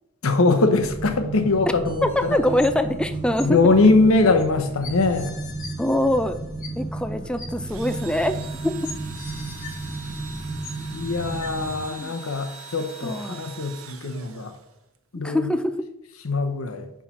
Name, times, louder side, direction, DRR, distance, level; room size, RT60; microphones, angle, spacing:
voice 1, 0.2-2.4 3.4-5.4 10.9-14.5 15.1-15.5 16.2-16.9, left 3 dB, 85° left, 8 dB, 0.9 m, -21 dB
sound 1, 0.7-11.9, right 2 dB, 25° right, 0.7 m, -33 dB
voice 2, 2.0-3.7 5.8-6.4 6.8-8.9 11.9-12.1 13.0-13.4 15.2-15.7, left 1 dB, 5° left, 9 dB, 0.3 m, -24 dB
sound 2, 2.1-3.0 3.4-3.5 4.4-4.5 4.8-7.0 7.4-7.5 8.4-8.5 8.8-11.0 11.4-11.5, left 5 dB, 40° left, 1.2 m, -42 dB
Engine / Drill, 7.6-15.0, right 5 dB, 70° right, 0.8 m, -42 dB
5.6 x 4.7 x 5.8 m, 0.84 s
head